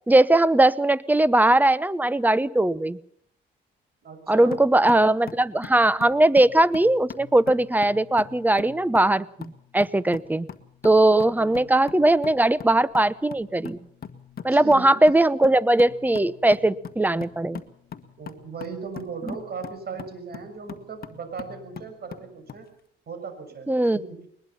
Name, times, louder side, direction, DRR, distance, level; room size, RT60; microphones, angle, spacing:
voice 1, 0.1-3.0 4.3-10.5 10.8-13.8 14.4-17.6 19.3-19.4 23.7-24.0, right 1 dB, 10° right, 18 dB, 0.9 m, -20 dB
voice 2, 4.0-4.6 11.4-11.7 14.5-15.0 18.2-22.7 23.1-23.7 23.9-24.3, right 5 dB, 55° right, 7 dB, 6.6 m, -37 dB
sound 1, 4.5-22.7, left 7 dB, 50° left, 1.7 m, -42 dB
21.5 x 21.0 x 5.8 m, 0.66 s
cardioid pair, 90°, 20 cm